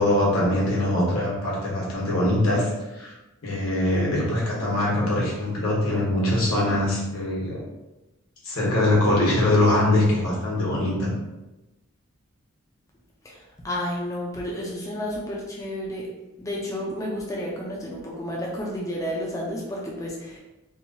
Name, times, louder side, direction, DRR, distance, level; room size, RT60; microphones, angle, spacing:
voice 1, 0.0-3.1 3.4-7.6 8.4-11.1, left 1 dB, 85° left, -5 dB, 1.0 m, -22 dB
voice 2, 13.6-16.0 16.4-20.4, equal, 15° left, -4 dB, 0.4 m, -31 dB
3.0 x 2.2 x 2.7 m, 1.0 s
head